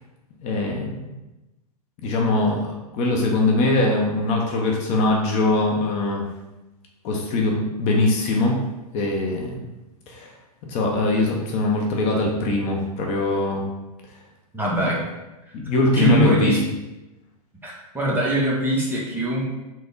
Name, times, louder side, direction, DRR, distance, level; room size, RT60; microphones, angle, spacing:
voice 1, 0.4-1.1 2.0-2.7 2.9-6.3 7.0-8.6 8.9-9.7 10.1-10.3 10.6-13.6 14.8-14.9 15.5-16.6, left 2 dB, 35° left, 0 dB, 0.6 m, -22 dB
voice 2, 14.5-15.0 15.9-16.6 17.6-19.4, right 1 dB, 10° right, -4 dB, 0.7 m, -22 dB
3.3 x 2.0 x 3.8 m, 1.0 s
hypercardioid pair, 115°, 20 cm